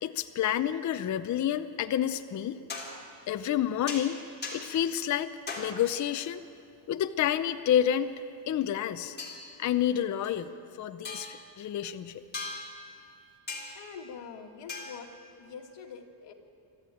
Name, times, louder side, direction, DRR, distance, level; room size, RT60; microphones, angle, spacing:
voice 1, 0.0-2.6 3.3-4.2 4.5-6.4 6.9-8.1 8.5-9.2 9.6-10.5 10.8-12.2, left 10 dB, 40° left, 9 dB, 0.7 m, -29 dB
sound 1, 2.3-2.4 2.7-3.0 3.9-4.1 4.4-4.7 5.5-5.8 9.2-9.5 10.2-10.3 11.0-11.5 12.3-12.9 13.5-13.9 14.7-15.2, left 3 dB, 20° left, 3.8 m, -39 dB
voice 2, 13.7-15.1 15.4-16.3, left 6 dB, 65° left, 2 dB, 2.2 m, -44 dB
24.0 x 14.0 x 9.2 m, 2.5 s
cardioid pair, 145°, 47 cm